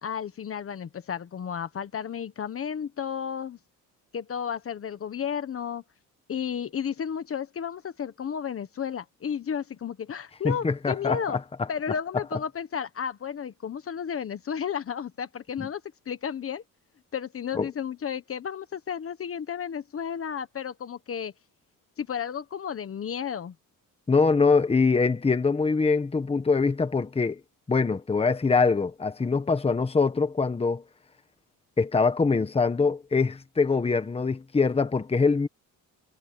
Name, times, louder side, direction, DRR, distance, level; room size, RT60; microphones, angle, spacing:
voice 1, 0.0-3.6 4.1-5.8 6.3-11.4 11.7-16.6 17.1-21.3 22.0-23.5, left 7 dB, 40° left, 1.3 m, -33 dB
voice 2, 10.4-11.4 17.5-17.7 24.1-27.4 27.7-30.8 31.8-35.5, left 4 dB, 15° left, 1.3 m, -23 dB
cardioid pair, 135°, 34 cm